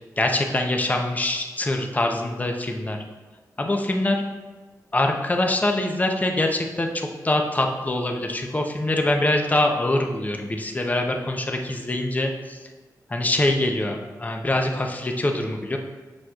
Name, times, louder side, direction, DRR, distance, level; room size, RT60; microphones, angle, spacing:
voice 1, 0.2-3.0 3.6-4.2 4.9-12.6 13.1-15.8, left 1 dB, 25° left, 3 dB, 0.7 m, -24 dB
7.5 x 6.0 x 2.4 m, 1.3 s
cardioid pair, 65°, 7 cm